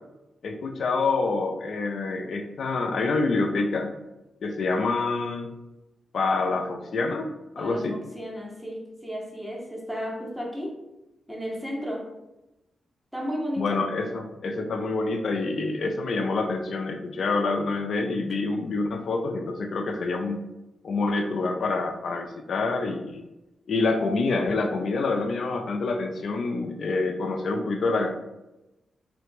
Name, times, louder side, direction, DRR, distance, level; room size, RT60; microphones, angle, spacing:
voice 1, 0.4-3.9 4.4-5.5 6.1-8.0 13.6-20.4 20.8-23.2 23.7-28.1, left 3 dB, 70° left, 4 dB, 0.3 m, -27 dB
voice 2, 7.6-10.8 11.3-12.1 13.1-13.8, equal, ahead, -1 dB, 0.9 m, -33 dB
3.2 x 2.0 x 3.2 m, 0.95 s
supercardioid pair, 50°, 0 cm